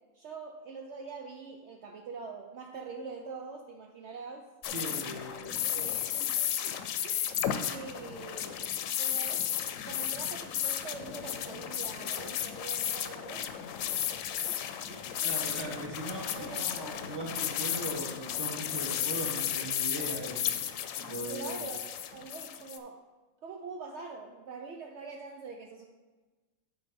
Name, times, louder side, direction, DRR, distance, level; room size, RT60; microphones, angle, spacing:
voice 1, 0.1-4.5 5.5-8.7 9.0-9.5 9.9-13.7 14.2-15.8 16.3-16.6 21.3-23.0 23.4-25.9, right 4 dB, 65° right, 2 dB, 0.9 m, -44 dB
sound 1, 4.6-22.8, left 10 dB, 80° left, 1.0 m, -34 dB
voice 2, 4.7-5.9 15.2-20.6 21.0-21.6, right 1 dB, 20° right, -2 dB, 1.4 m, -39 dB
8.8 x 4.0 x 5.2 m, 1.3 s
omnidirectional pair, 1.4 m